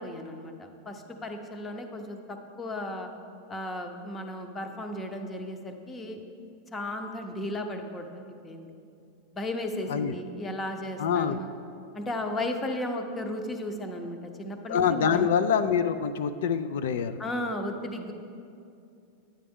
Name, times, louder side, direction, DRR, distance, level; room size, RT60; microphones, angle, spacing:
voice 1, 0.0-3.1 3.5-6.2 6.7-8.7 9.3-11.5 11.9-15.3 17.2-18.1, left 1 dB, 15° left, 5 dB, 0.7 m, -35 dB
voice 2, 11.0-11.4 14.7-17.2, left 7 dB, 75° left, 10 dB, 0.4 m, -25 dB
9.8 x 8.7 x 3.6 m, 2.5 s
supercardioid pair, 150°, 0 cm